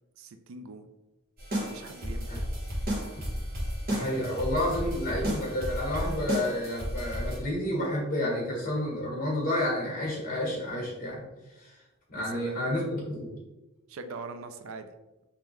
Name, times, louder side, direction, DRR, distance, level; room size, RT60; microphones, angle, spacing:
voice 1, 0.2-0.9 1.6-2.5 12.1-12.6 13.9-14.9, right 3 dB, 70° right, 8 dB, 0.4 m, -42 dB
sound 1, 1.4-7.4, equal, 45° right, 1.1 m, -33 dB
voice 2, 3.9-11.3 11.6-11.8 12.1-13.3, left 1 dB, 40° left, -4 dB, 1.5 m, -30 dB
3.6 x 2.8 x 3.1 m, 1.1 s
head